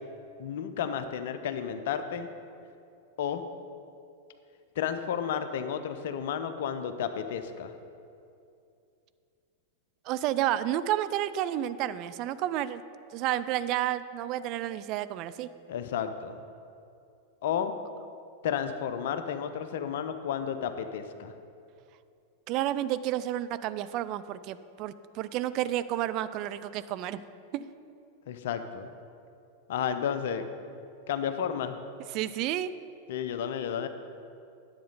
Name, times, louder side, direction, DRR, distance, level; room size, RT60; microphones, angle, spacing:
voice 1, 0.4-2.3 3.2-3.4 4.8-7.7 15.7-16.4 17.4-17.7 18.4-21.3 28.3-28.9 29.7-30.4 31.1-31.7 33.1-33.9, left 8 dB, 55° left, 9 dB, 0.5 m, -32 dB
voice 2, 10.1-12.8 13.1-15.5 22.5-27.2 27.5-27.6 32.1-32.7, right 12 dB, 40° right, 14 dB, 0.3 m, -31 dB
10.0 x 7.9 x 4.0 m, 2.6 s
figure-of-eight pair, 90°, 0 cm